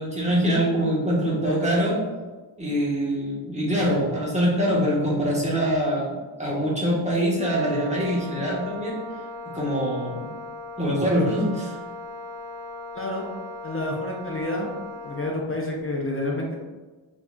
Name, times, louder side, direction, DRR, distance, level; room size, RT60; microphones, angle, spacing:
voice 1, 0.0-2.0 2.6-6.1 6.4-8.9 9.5-10.3 10.8-11.8, equal, 15° right, -5 dB, 1.1 m, -24 dB
Wind instrument woodwind instrument, 7.4-15.4, left 2 dB, 65° right, 1.2 m, -38 dB
voice 2, 13.6-14.7 15.0-16.5, left 1 dB, 30° left, -1 dB, 0.6 m, -29 dB
4.5 x 2.8 x 2.3 m, 1.3 s
wide cardioid pair, 85°, 47 cm